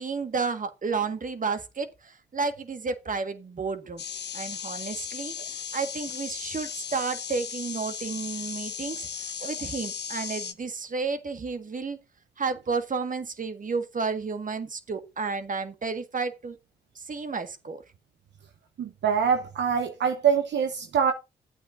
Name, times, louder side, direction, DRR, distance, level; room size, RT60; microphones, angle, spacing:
voice 1, 0.0-4.0 4.3-5.4 5.7-12.0 12.4-16.6 17.0-17.8, right 4 dB, 45° right, 1.7 m, -31 dB
sound 1, 4.0-10.5, left 7 dB, 65° left, 1.2 m, -36 dB
voice 2, 18.8-21.1, right 7 dB, 70° right, 1.0 m, -24 dB
12.5 x 8.5 x 2.6 m
supercardioid pair, 50°, 19 cm